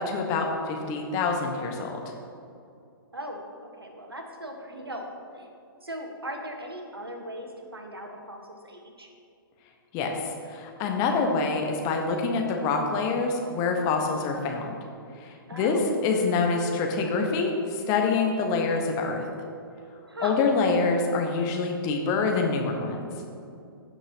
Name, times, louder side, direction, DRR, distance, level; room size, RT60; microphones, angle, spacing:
voice 1, 0.0-2.0 9.9-10.2 10.5-14.7 15.2-15.8 16.0-19.2 20.2-23.1, left 4 dB, 30° left, 2 dB, 1.2 m, -26 dB
voice 2, 3.1-5.5 5.8-9.1 15.5-15.9 20.0-20.4, equal, 85° right, 2 dB, 1.4 m, -39 dB
15.5 x 6.1 x 2.9 m, 2.6 s
figure-of-eight pair, 120°, 12 cm